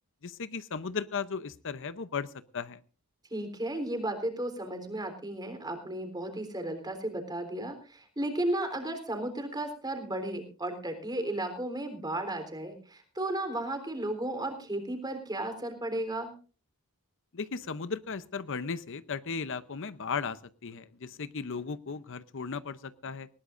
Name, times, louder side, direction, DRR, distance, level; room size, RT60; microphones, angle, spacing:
voice 1, 0.2-2.8 17.3-23.3, left 5 dB, 60° left, 14 dB, 0.7 m, -36 dB
voice 2, 3.3-16.3, right 1 dB, 20° right, 6 dB, 3.6 m, -34 dB
20.0 x 18.5 x 2.6 m, 0.37 s
head